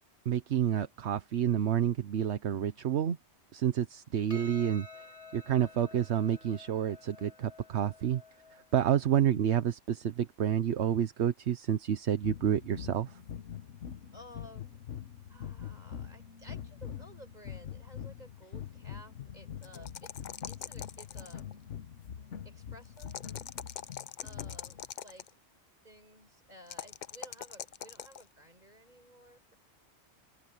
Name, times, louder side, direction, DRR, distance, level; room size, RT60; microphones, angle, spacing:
voice 1, 0.2-3.2 3.5-5.0 5.3-8.2 8.5-13.2, right 9 dB, 70° right, 1.1 m, -29 dB
Percussion, 4.3-8.9, left 2 dB, 30° left, 2.5 m, -52 dB
sound 1, 12.2-24.9, left 9 dB, 90° left, 1.3 m, -44 dB
voice 2, 14.1-14.8 15.3-21.6 22.4-23.2 24.2-25.3 25.8-29.6, equal, 35° right, 5.8 m, -55 dB
sound 2, 19.6-21.5 23.0-25.3 26.7-28.2, left 9 dB, 50° left, 0.6 m, -43 dB
open air
omnidirectional pair, 1.2 m